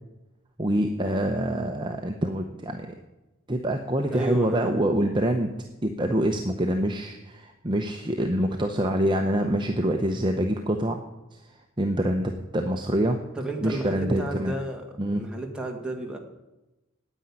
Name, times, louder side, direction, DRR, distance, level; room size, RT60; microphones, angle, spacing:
voice 1, 0.6-2.9 3.5-5.5 5.8-11.0 11.3-13.2 13.6-14.5 15.0-15.2, right 1 dB, 20° right, 3 dB, 0.8 m, -26 dB
voice 2, 4.1-4.8 13.3-14.8 15.1-16.2, right 1 dB, 5° right, 0 dB, 1.7 m, -32 dB
10.0 x 9.0 x 9.6 m, 1.0 s
head